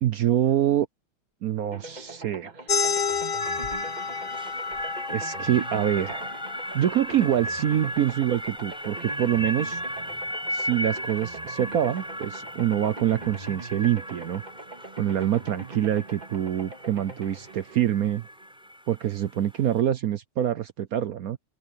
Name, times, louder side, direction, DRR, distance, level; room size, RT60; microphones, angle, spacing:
voice 1, 0.0-0.9 1.4-2.5 5.1-6.3 6.7-9.8 10.5-14.4 15.0-18.2 18.9-21.4, right 11 dB, 70° right, 0.8 m, -25 dB
sound 1, 1.7-18.6, right 3 dB, 20° right, 2.1 m, -43 dB
sound 2, 2.7-7.8, left 6 dB, 30° left, 1.2 m, -31 dB
sound 3, 3.4-19.8, equal, ahead, 7.8 m, -36 dB
open air
omnidirectional pair, 2.3 m